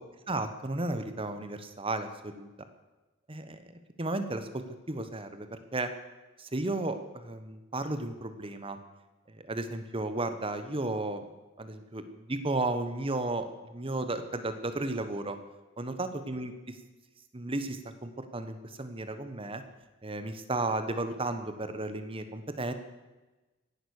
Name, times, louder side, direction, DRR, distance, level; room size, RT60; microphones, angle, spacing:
voice 1, 0.3-2.5 3.3-3.6 4.0-5.9 6.4-8.8 9.3-11.2 11.6-13.5 13.7-15.4 15.8-16.8 17.3-19.6 20.0-22.7, right 2 dB, 25° right, 9 dB, 1.1 m, -34 dB
17.0 x 11.0 x 6.5 m, 1.1 s
head